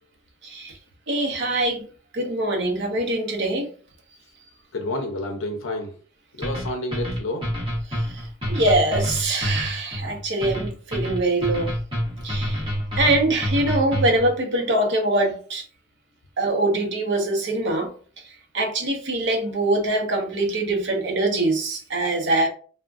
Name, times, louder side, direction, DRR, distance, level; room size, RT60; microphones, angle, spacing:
voice 1, 0.4-0.8 1.1-1.9 2.1-3.7 7.9-11.7 12.2-12.6 13.0-15.6 16.4-17.9 18.5-22.5, right 2 dB, 60° right, 0.7 m, -23 dB
voice 2, 4.7-6.0 6.3-7.6, left 2 dB, 70° left, 0.6 m, -30 dB
sound 1, 6.4-14.3, equal, 25° right, 1.0 m, -27 dB
3.4 x 2.1 x 2.4 m
head